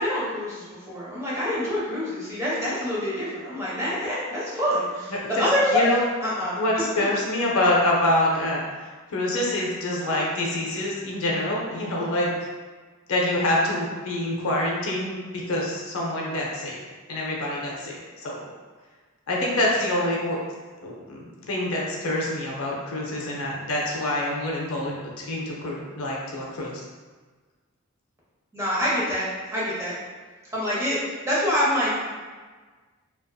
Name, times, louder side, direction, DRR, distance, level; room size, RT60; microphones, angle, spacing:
voice 1, 0.0-5.9 6.2-6.6 28.5-29.3 29.5-29.9 30.5-32.1, equal, 15° right, -8 dB, 0.6 m, -26 dB
voice 2, 5.1-5.4 5.7-6.0 6.6-8.7 9.1-12.5 13.1-16.8 17.1-18.4 19.3-20.4 20.8-26.8, left 1 dB, 75° left, -3 dB, 0.5 m, -26 dB
2.6 x 2.3 x 2.3 m, 1.4 s
head